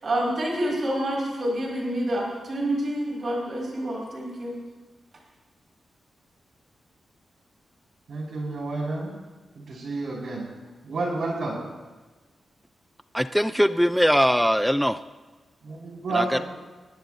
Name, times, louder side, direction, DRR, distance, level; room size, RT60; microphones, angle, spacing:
voice 1, 0.0-4.6, right 1 dB, 40° right, -3 dB, 5.0 m, -28 dB
voice 2, 8.1-9.1 9.6-10.5 10.8-11.6 15.6-16.4, right 3 dB, 65° right, -3 dB, 5.3 m, -30 dB
voice 3, 13.1-15.0 16.1-16.4, equal, ahead, 11 dB, 0.3 m, -21 dB
21.5 x 17.5 x 2.6 m, 1.3 s
wide cardioid pair, 165°, 0 cm